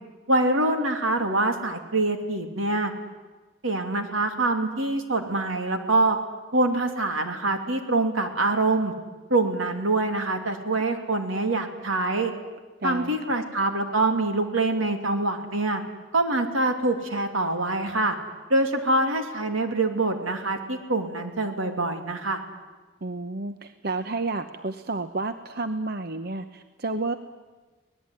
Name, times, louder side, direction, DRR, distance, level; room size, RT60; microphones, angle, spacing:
voice 1, 0.3-2.9 3.6-6.2 6.5-8.9 9.3-12.3 12.8-15.8 16.1-18.2 18.5-22.4, right 2 dB, 80° right, 6 dB, 2.8 m, -25 dB
voice 2, 12.8-13.2 23.0-27.2, right 3 dB, 50° right, 9 dB, 0.9 m, -31 dB
25.0 x 19.0 x 9.8 m, 1.3 s
head